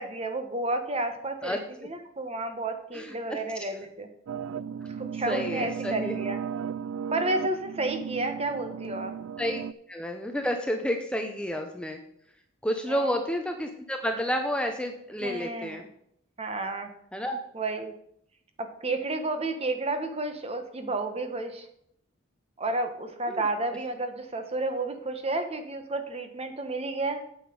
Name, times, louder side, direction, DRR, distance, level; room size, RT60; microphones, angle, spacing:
voice 1, 0.0-4.1 5.0-6.4 7.1-9.1 12.9-13.2 15.2-15.8 16.4-16.9 17.5-17.9 18.6-21.7 22.6-27.2, right 2 dB, 30° right, 7 dB, 1.1 m, -31 dB
voice 2, 2.9-3.7 5.3-6.1 9.4-9.6 9.9-12.0 12.6-15.8 17.1-17.4 23.3-23.4, equal, 5° left, 4 dB, 0.7 m, -30 dB
sound 1, 4.3-9.7, right 7 dB, 85° right, 0.4 m, -35 dB
8.4 x 7.9 x 5.2 m, 0.71 s
head